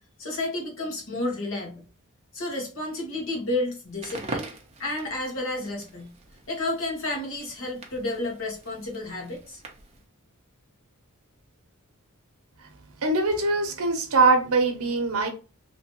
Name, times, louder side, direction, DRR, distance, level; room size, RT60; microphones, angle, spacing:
voice 1, 0.2-1.8 2.3-4.5 4.8-6.1 6.5-9.6, left 2 dB, 65° left, 1.5 m, -31 dB
Crackle, 3.9-10.0, right 2 dB, 30° right, 0.7 m, -42 dB
voice 2, 13.0-15.3, right 3 dB, 70° right, 0.9 m, -22 dB
3.1 x 3.0 x 2.9 m
head